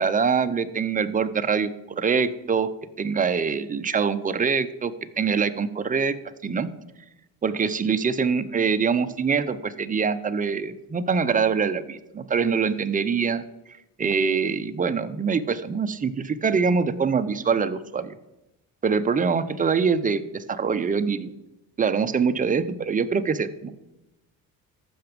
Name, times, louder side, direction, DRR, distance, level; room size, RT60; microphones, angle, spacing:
voice 1, 0.0-1.7 2.0-2.7 3.0-6.2 6.4-6.7 7.4-13.4 14.0-18.2 18.8-21.3 21.8-23.7, right 5 dB, 25° right, 10 dB, 0.6 m, -24 dB
14.0 x 5.9 x 5.2 m, 0.97 s
cardioid pair, 105°, 35 cm